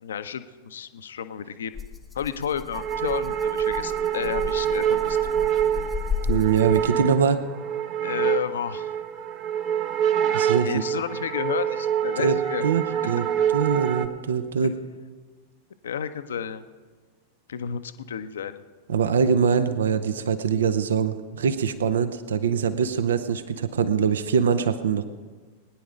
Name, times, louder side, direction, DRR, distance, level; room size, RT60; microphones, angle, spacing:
voice 1, 0.0-1.8 2.1-5.2 5.5-5.8 8.0-8.9 10.6-12.7 13.0-13.1 14.6-14.7 15.8-16.6 17.5-18.6, left 8 dB, 65° left, 12 dB, 0.7 m, -31 dB
Rattle (instrument), 1.7-7.1, left 6 dB, 10° left, 1.0 m, -34 dB
sound 1, 2.7-14.1, right 9 dB, 40° right, 0.9 m, -26 dB
voice 2, 6.2-7.4 10.3-10.8 12.2-12.4 12.6-13.3 13.5-14.8 18.9-25.0, right 6 dB, 65° right, 12 dB, 0.8 m, -23 dB
20.5 x 10.0 x 5.1 m, 1.4 s
figure-of-eight pair, 90°, 0 cm